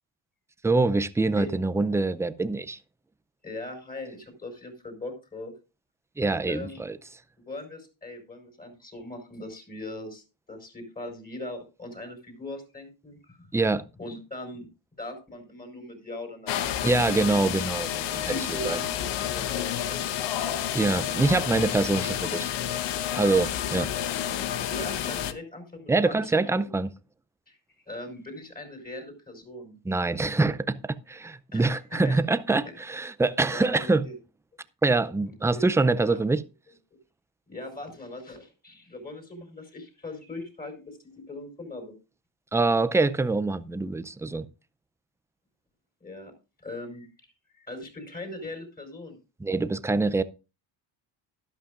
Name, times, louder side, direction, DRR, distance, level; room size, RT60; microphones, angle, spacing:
voice 1, 0.6-2.8 6.2-7.0 13.5-13.8 16.8-18.3 18.6-18.8 20.7-22.5 23.2-23.9 25.9-26.9 29.9-30.8 31.1-34.0 34.8-36.4 42.5-44.5 49.4-50.2, right 3 dB, 5° right, 0.5 m, -24 dB
voice 2, 3.4-5.5 6.5-6.8 7.4-13.5 14.0-14.7 15.0-16.9 17.8-17.9 18.3-20.6 24.7-26.5 27.5-27.6 27.9-29.8 31.5-32.1 33.5-34.2 34.5-34.6 35.3-35.7 36.0-36.3 37.5-41.0 41.3-41.9 46.0-46.3 46.6-47.1 47.5-49.2, left 2 dB, 20° left, 4.7 m, -40 dB
sound 1, 16.5-25.3, left 10 dB, 65° left, 1.2 m, -30 dB
12.5 x 11.5 x 2.5 m
cardioid pair, 105°, 46 cm